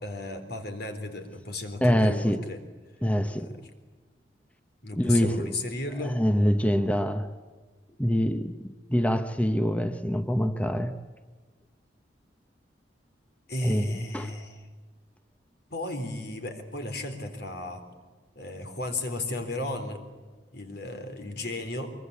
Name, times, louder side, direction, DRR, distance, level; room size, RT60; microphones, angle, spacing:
voice 1, 0.0-2.6 3.3-3.7 4.8-6.2 13.5-14.6 15.7-17.8 18.4-20.0 20.5-21.9, left 2 dB, 65° left, 7 dB, 3.9 m, -35 dB
voice 2, 1.8-2.4 3.0-3.5 4.9-5.5 6.0-7.3 8.0-8.5 8.9-10.9 13.6-13.9 14.1-14.3, equal, 10° left, 8 dB, 1.0 m, -24 dB
24.0 x 23.5 x 8.5 m, 1.4 s
head